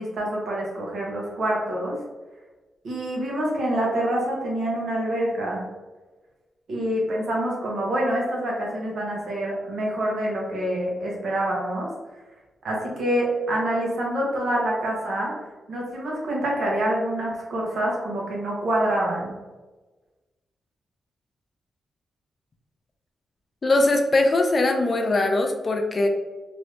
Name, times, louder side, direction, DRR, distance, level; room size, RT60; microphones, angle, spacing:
voice 1, 0.0-2.0 2.8-5.7 6.7-11.9 12.6-15.3 15.7-19.4, right 1 dB, 60° right, -3 dB, 1.0 m, -26 dB
voice 2, 23.6-26.1, left 2 dB, 30° left, 4 dB, 0.3 m, -21 dB
2.9 x 2.6 x 3.2 m, 1.2 s
wide cardioid pair, 175°, 0 cm